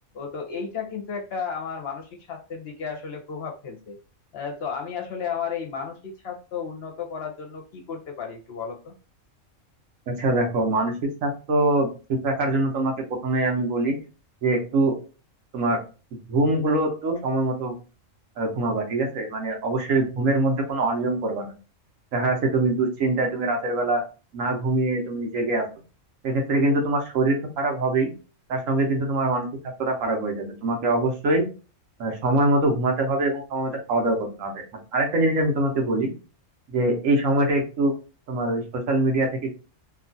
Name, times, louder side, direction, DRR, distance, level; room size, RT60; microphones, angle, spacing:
voice 1, 0.1-4.0 4.3-9.0, left 6 dB, 60° left, 3 dB, 0.8 m, -33 dB
voice 2, 10.1-10.9 11.2-12.9 13.2-14.0 14.4-15.0 15.5-15.8 16.3-17.7 18.4-21.5 22.1-24.0 24.3-25.7 26.2-28.1 28.5-29.5 29.8-31.4 32.0-34.6 34.9-36.1 36.7-37.9 38.3-39.3, right 2 dB, 80° right, 1 dB, 1.3 m, -23 dB
2.9 x 2.4 x 2.6 m, 0.33 s
omnidirectional pair, 1.3 m